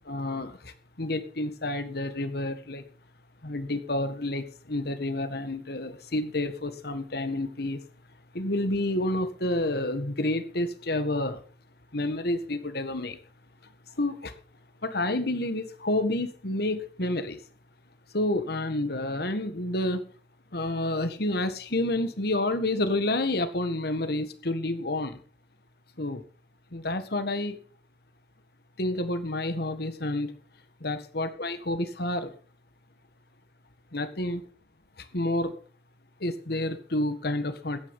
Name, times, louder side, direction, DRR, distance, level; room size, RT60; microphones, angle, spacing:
voice 1, 0.1-0.6 1.0-2.8 3.4-7.8 8.3-11.4 11.9-13.2 14.0-14.3 14.8-17.4 18.1-20.0 20.5-25.2 26.0-26.2 26.7-27.6 28.8-30.3 30.8-32.3 33.9-34.4 35.1-35.5 36.2-37.8, left 1 dB, 65° left, 11 dB, 1.8 m, -29 dB
14.5 x 10.0 x 5.5 m, 0.41 s
head